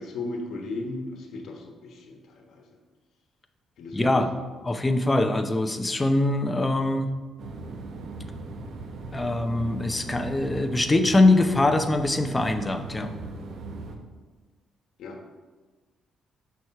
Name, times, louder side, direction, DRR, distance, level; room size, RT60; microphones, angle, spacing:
voice 1, 0.0-2.6 3.8-4.2 15.0-15.2, left 2 dB, 70° left, 3 dB, 1.2 m, -36 dB
voice 2, 3.9-4.3 4.6-7.1 9.1-13.1, left 2 dB, 20° left, 7 dB, 0.7 m, -23 dB
sound 1, 7.4-14.0, right 3 dB, 65° right, 0.9 m, -38 dB
6.1 x 4.7 x 5.7 m, 1.3 s
cardioid pair, 90°, 0 cm